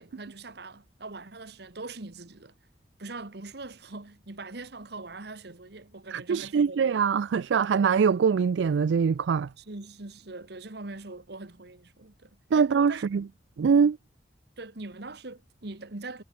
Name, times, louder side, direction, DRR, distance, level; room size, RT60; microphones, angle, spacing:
voice 1, 0.0-2.5 3.0-6.8 9.6-12.3 12.5-13.0 14.6-16.2, right 3 dB, 65° right, 1.5 m, -42 dB
voice 2, 6.1-9.5 12.5-13.2 13.6-14.0, right 6 dB, 80° right, 0.4 m, -23 dB
head